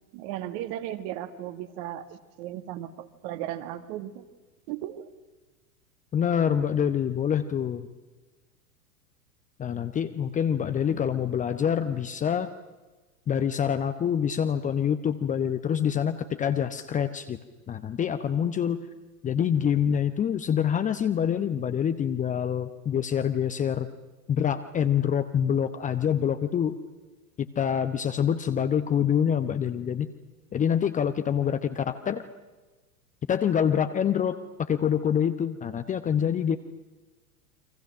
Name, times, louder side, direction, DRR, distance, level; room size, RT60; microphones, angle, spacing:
voice 1, 0.1-4.3 4.7-5.1, right 12 dB, 40° right, 10 dB, 2.0 m, -36 dB
voice 2, 6.1-7.9 9.6-12.5 13.3-17.4 17.7-18.8 19.2-23.9 24.3-26.8 27.4-30.1 30.5-32.2 33.3-36.6, left 8 dB, 15° left, 10 dB, 0.9 m, -26 dB
29.5 x 25.0 x 6.4 m, 1.2 s
figure-of-eight pair, 90°, 45 cm